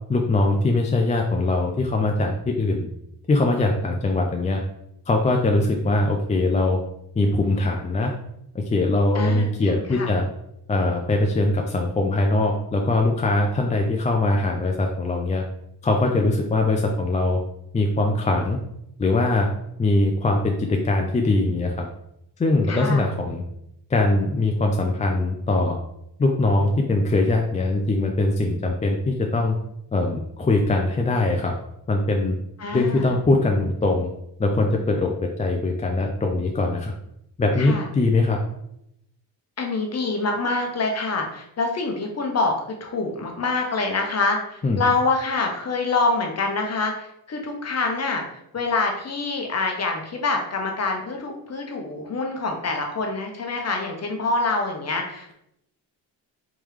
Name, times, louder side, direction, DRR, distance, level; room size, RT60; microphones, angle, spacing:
voice 1, 0.1-2.9 3.3-4.6 5.1-6.8 7.2-8.1 8.5-10.3 10.7-15.4 15.8-17.4 17.7-18.6 19.0-19.5 19.8-21.9 22.4-23.4 23.9-25.8 26.2-29.5 29.9-31.5 31.9-32.4 32.7-34.1 34.4-36.9 37.4-38.4 44.6-44.8, left 2 dB, 20° left, 2 dB, 0.4 m, -22 dB
voice 2, 9.1-10.1 22.7-23.1 32.6-33.1 37.6-37.9 39.6-42.6 42.8-48.2 48.5-55.3, left 3 dB, 35° left, 2 dB, 0.9 m, -26 dB
3.5 x 3.0 x 3.1 m, 0.77 s
cardioid pair, 80°, 43 cm